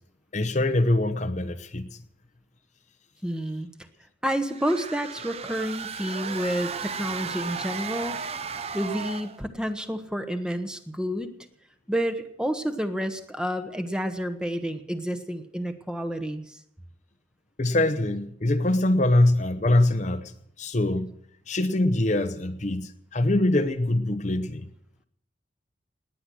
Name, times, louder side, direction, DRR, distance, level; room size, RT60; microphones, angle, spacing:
voice 1, 0.3-2.0 17.6-21.1 21.5-24.7, left 1 dB, 40° left, 9 dB, 0.8 m, -24 dB
voice 2, 3.2-3.7 4.2-8.2 8.7-11.3 11.9-16.6, equal, 5° right, 7 dB, 1.0 m, -29 dB
sound 1, 4.5-9.4, right 5 dB, 35° right, 0.6 m, -35 dB
18.5 x 9.8 x 7.8 m, 0.75 s
head